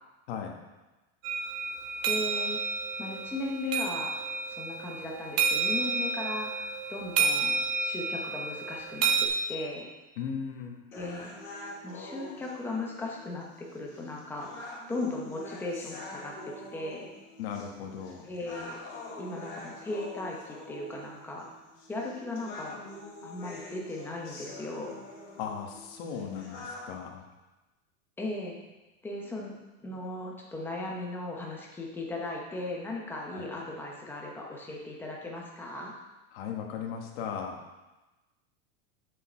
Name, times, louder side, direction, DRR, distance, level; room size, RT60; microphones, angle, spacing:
sound 1, 1.2-9.3, right 4 dB, 25° right, 0.4 m, -30 dB
voice 1, 2.0-2.6 3.0-4.1 4.5-9.9 10.9-11.3 11.8-14.5 14.9-17.1 18.2-18.8 19.2-21.5 21.9-22.8 23.2-25.0 28.2-28.6 29.0-29.5 29.8-35.9, left 2 dB, 5° left, -2 dB, 0.8 m, -37 dB
voice 2, 10.2-10.7 17.4-18.2 25.4-27.2 33.3-33.5 36.3-37.6, left 7 dB, 50° left, 1 dB, 1.5 m, -37 dB
sound 2, 10.9-26.9, left 2 dB, 35° left, 2.2 m, -45 dB
8.5 x 6.7 x 4.4 m, 1.1 s
supercardioid pair, 175°, 37 cm